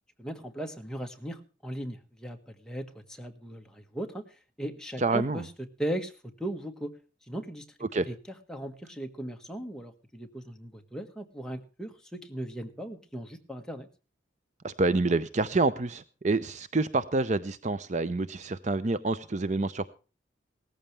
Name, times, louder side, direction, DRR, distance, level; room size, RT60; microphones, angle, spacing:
voice 1, 0.2-4.2 4.6-5.5 5.8-6.1 6.4-6.9 7.3-8.1 8.5-13.9, right 1 dB, 5° left, 3 dB, 1.5 m, -37 dB
voice 2, 5.0-5.4 7.9-8.1 14.6-19.9, right 3 dB, 35° right, 14 dB, 0.6 m, -27 dB
18.0 x 14.5 x 3.3 m, 0.35 s
head